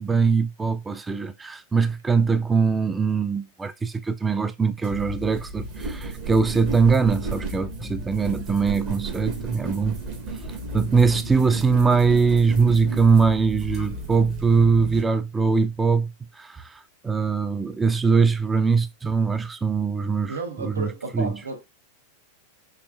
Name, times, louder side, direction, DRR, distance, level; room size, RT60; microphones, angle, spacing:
voice 1, 0.0-10.0 10.7-16.1 16.4-21.3, right 5 dB, 15° right, 0.4 m, -22 dB
sound 1, 4.8-15.0, right 2 dB, 45° right, 1.2 m, -34 dB
voice 2, 20.3-21.6, right 3 dB, 75° right, 0.7 m, -32 dB
4.3 x 2.9 x 2.3 m
figure-of-eight pair, 90°, 0 cm